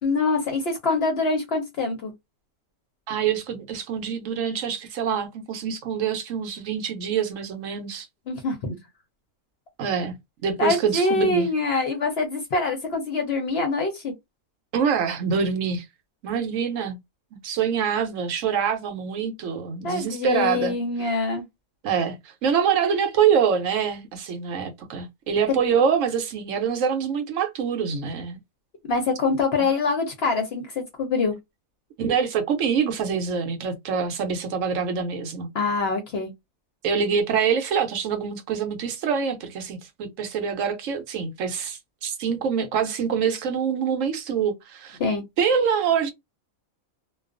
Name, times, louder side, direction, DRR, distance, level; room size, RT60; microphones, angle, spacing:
voice 1, 0.0-2.1 8.3-8.8 10.6-14.1 19.8-21.4 28.9-31.3 35.5-36.3 45.0-45.2, left 3 dB, 60° left, 0.7 m, -24 dB
voice 2, 3.1-8.1 9.8-10.2 10.4-11.5 14.7-15.9 16.2-17.0 17.4-20.8 21.8-28.4 29.6-29.7 32.0-35.5 36.8-45.0 45.4-46.1, right 7 dB, 70° right, 0.9 m, -25 dB
2.3 x 2.2 x 2.4 m
omnidirectional pair, 1.5 m